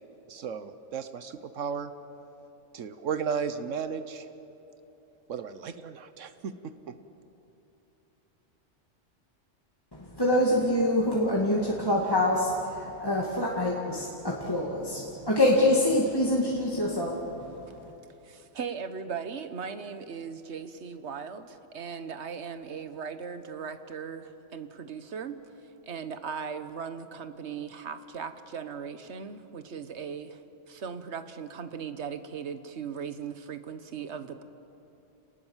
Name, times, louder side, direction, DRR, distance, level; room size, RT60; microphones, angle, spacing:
voice 1, 0.3-1.9 2.7-4.3 5.3-6.9, right 6 dB, 80° right, 11 dB, 1.3 m, -34 dB
voice 2, 9.9-17.9, left 1 dB, 20° left, -3 dB, 2.3 m, -26 dB
voice 3, 18.2-25.4 25.8-30.4 30.7-34.4, right 6 dB, 65° right, 10 dB, 1.4 m, -38 dB
29.5 x 19.5 x 7.4 m, 2.9 s
omnidirectional pair, 1.3 m